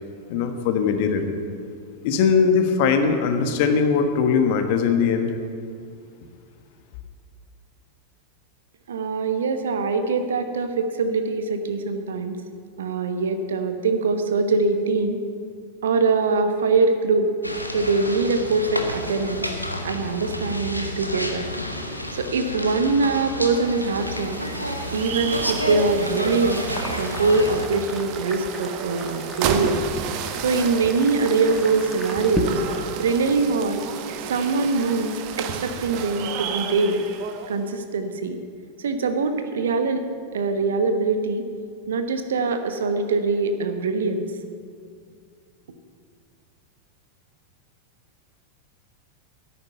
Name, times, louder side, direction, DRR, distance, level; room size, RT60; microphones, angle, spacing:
voice 1, 0.3-1.3 2.0-5.3, left 6 dB, 50° left, 6 dB, 1.3 m, -20 dB
voice 2, 8.9-12.4 12.8-15.2 15.8-17.3 17.7-19.5 19.8-21.4 22.1-24.4 24.9-26.6 26.9-29.8 30.4-32.6 33.0-33.8 34.3-37.0 37.5-38.4 38.8-40.0 40.3-41.4 41.9-44.3, right 4 dB, 65° right, 8 dB, 1.1 m, -23 dB
sound 1, 17.4-27.7, equal, 90° left, 1.1 m, -30 dB
sound 2, 23.5-37.6, right 7 dB, 45° right, 0.9 m, -32 dB
sound 3, 26.7-33.1, left 3 dB, 10° left, 1.4 m, -36 dB
11.0 x 8.7 x 9.1 m, 2.2 s
figure-of-eight pair, 90°, 0 cm